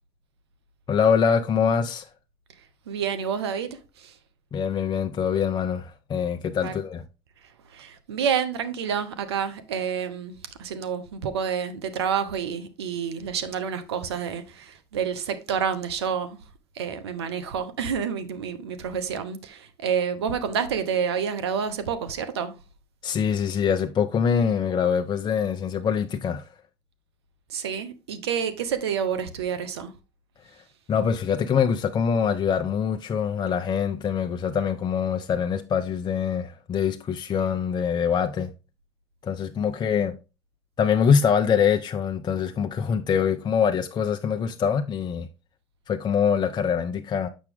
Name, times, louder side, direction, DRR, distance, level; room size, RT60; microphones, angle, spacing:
voice 1, 0.9-2.1 4.5-7.0 23.0-26.4 30.9-38.5 39.2-40.2 40.8-45.3 45.9-47.3, left 7 dB, 35° left, 0.6 m, -24 dB
voice 2, 2.9-4.2 6.6-6.8 7.6-16.4 16.7-22.6 27.5-29.9, right 7 dB, 90° right, 0.8 m, -29 dB
7.3 x 5.9 x 3.5 m
hypercardioid pair, 80°, 13 cm